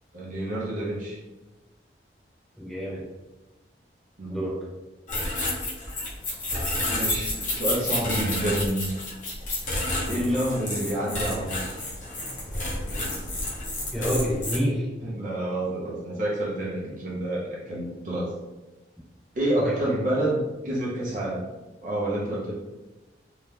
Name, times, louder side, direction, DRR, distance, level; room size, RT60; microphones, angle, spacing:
voice 1, 0.1-1.2 4.2-4.4 6.9-8.9 10.1-11.9 15.0-18.3 19.3-21.4 21.8-22.5, right 1 dB, 45° right, -5 dB, 0.7 m, -28 dB
voice 2, 2.6-3.0 4.3-4.5 10.0-10.4 13.9-14.9 19.6-19.7, equal, ahead, -8 dB, 0.9 m, -28 dB
sound 1, 5.1-14.6, left 1 dB, 45° left, 0.9 m, -30 dB
2.7 x 2.3 x 3.4 m, 1.1 s
head